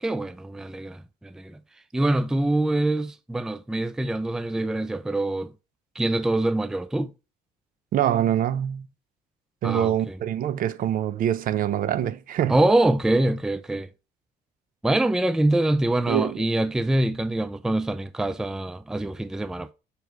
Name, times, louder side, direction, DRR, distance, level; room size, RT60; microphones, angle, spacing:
voice 1, 0.0-1.6 1.9-5.5 6.0-7.1 9.6-10.2 12.5-13.9 14.8-19.7, right 1 dB, 5° right, 0.4 m, -24 dB
voice 2, 7.9-8.9 9.6-12.6 16.1-16.4, right 11 dB, 55° right, 0.6 m, -25 dB
7.0 x 4.7 x 3.1 m
cardioid pair, 110°, 17 cm